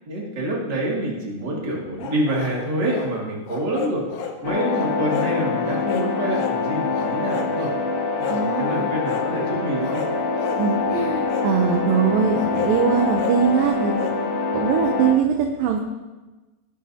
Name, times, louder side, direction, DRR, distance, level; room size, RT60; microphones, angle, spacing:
voice 1, 0.1-4.0 4.4-7.7 8.2-10.0, right 1 dB, 30° right, -4 dB, 2.3 m, -26 dB
sound 1, 2.0-3.1 3.5-4.4 4.7-5.3 5.6-6.6 6.9-7.7 8.2-8.5 9.0-9.3 9.8-10.6 11.3-11.5 12.3-14.2, left 7 dB, 85° left, 3.4 m, -33 dB
sound 2, 4.4-15.1, left 4 dB, 70° left, 2.9 m, -25 dB
voice 2, 8.3-8.9 10.6-14.2 14.5-15.8, right 6 dB, 75° right, 3 dB, 2.1 m, -22 dB
19.0 x 11.0 x 2.9 m, 1.2 s
omnidirectional pair, 4.9 m